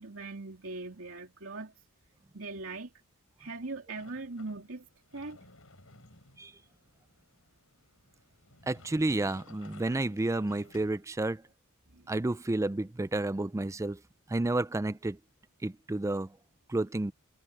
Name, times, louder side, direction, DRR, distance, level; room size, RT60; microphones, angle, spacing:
voice 1, 0.0-1.7 2.3-2.9 3.4-4.9 5.1-5.4 11.9-12.1, right 3 dB, 65° right, 2.9 m, -40 dB
Sliding door, 4.0-11.4, left 3 dB, 70° left, 6.8 m, -58 dB
voice 2, 8.7-11.4 12.1-14.0 14.3-15.2 15.6-16.3 16.7-17.1, right 2 dB, 15° right, 0.4 m, -30 dB
head